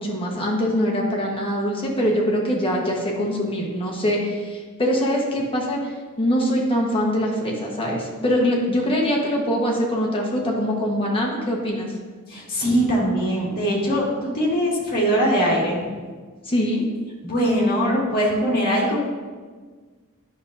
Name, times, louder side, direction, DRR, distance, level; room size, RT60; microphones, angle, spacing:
voice 1, 0.0-11.9 16.4-16.8, equal, 25° left, -1 dB, 1.2 m, -23 dB
voice 2, 12.3-15.8 17.2-19.0, equal, 45° left, -4 dB, 2.0 m, -21 dB
10.0 x 6.1 x 2.6 m, 1.5 s
head